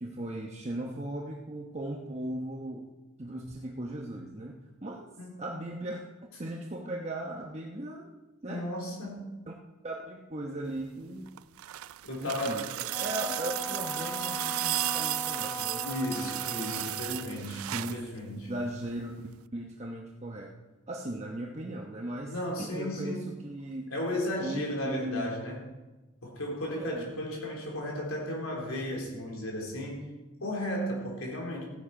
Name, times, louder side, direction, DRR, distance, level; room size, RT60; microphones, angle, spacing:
voice 1, 0.0-2.9 3.2-5.1 5.4-8.1 8.4-8.7 9.5-9.6 9.8-11.3 12.2-16.3 17.7-18.1 18.3-20.5 20.9-23.9 24.4-25.4 26.7-27.1, right 1 dB, 30° right, 0 dB, 1.0 m, -38 dB
voice 2, 8.5-9.3 12.0-12.7 15.8-18.5 22.2-23.2 23.9-25.6 26.2-30.1 30.4-31.6, left 1 dB, 80° left, -1 dB, 3.8 m, -34 dB
sound 1, 11.3-18.0 19.3-19.4, right 16 dB, 85° right, 0.4 m, -34 dB
Wind instrument woodwind instrument, 12.9-17.4, left 1 dB, 15° left, 0.3 m, -39 dB
15.5 x 10.0 x 5.0 m, 1.1 s
head